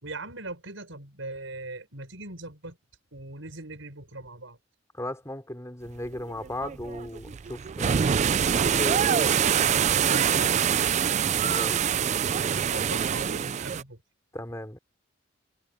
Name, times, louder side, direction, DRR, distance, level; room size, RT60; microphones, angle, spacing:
voice 1, 0.0-2.8 3.1-4.6 9.9-12.2 12.5-14.0, right 2 dB, 80° right, 5.6 m, -40 dB
voice 2, 4.9-8.0 8.5-9.1 11.5-11.8 14.3-14.8, left 1 dB, 15° left, 3.5 m, -36 dB
sound 1, 6.1-13.8, right 8 dB, 35° right, 0.3 m, -25 dB
head